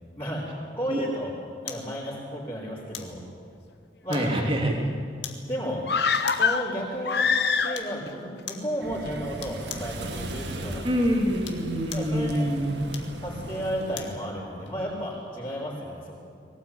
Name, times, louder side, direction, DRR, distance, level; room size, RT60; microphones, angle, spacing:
voice 1, 0.2-1.3 1.6-3.2 4.0-4.3 5.5-5.9 6.4-7.3 7.6-10.9 11.9-12.5 13.2-16.2, equal, 20° left, -10 dB, 5.3 m, -33 dB
sound 1, 1.7-1.9 2.9-3.2 4.1-4.5 5.2-5.5 6.2-6.6 7.7-8.0 8.5-8.7 9.4-9.9 11.3-12.2 12.9-14.2 14.7-14.8, left 9 dB, 80° left, 2.1 m, -40 dB
voice 2, 4.1-4.8 10.8-12.8, equal, 30° right, 1 dB, 2.9 m, -25 dB
sound 2, 5.9-8.1 8.4-8.5, left 5 dB, 60° left, 1.0 m, -24 dB
sound 3, 8.8-14.1, right 1 dB, 70° right, 2.0 m, -37 dB
21.5 x 18.0 x 8.9 m, 2.3 s
head